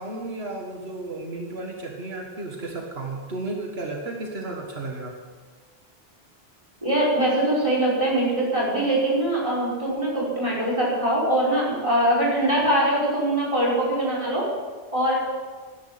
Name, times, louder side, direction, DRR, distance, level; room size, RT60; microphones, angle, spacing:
voice 1, 0.0-5.2, right 2 dB, 85° right, 0 dB, 1.9 m, -33 dB
voice 2, 6.8-14.4 14.9-15.2, right 1 dB, 30° right, -5 dB, 5.9 m, -22 dB
18.5 x 10.5 x 5.9 m, 1.4 s
omnidirectional pair, 1.0 m